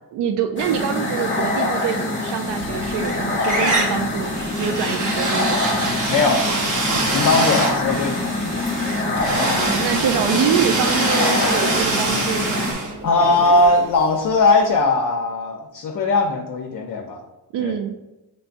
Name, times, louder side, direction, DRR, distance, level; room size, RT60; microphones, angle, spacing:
voice 1, 0.1-5.8 9.7-12.8 17.5-18.0, right 8 dB, 75° right, 5 dB, 0.5 m, -25 dB
sound 1, 0.6-12.7, left 2 dB, 30° left, 0.9 m, -24 dB
sound 2, 2.5-3.1 3.4-14.3, right 3 dB, 50° right, 0.9 m, -25 dB
voice 2, 6.1-6.4 7.1-8.2 13.0-17.2 17.6-17.7, left 3 dB, 50° left, 2 dB, 0.6 m, -19 dB
sound 3, 8.5-13.9, right 2 dB, 15° right, 0.6 m, -40 dB
5.9 x 3.2 x 2.6 m, 1.0 s
cardioid pair, 110°, 41 cm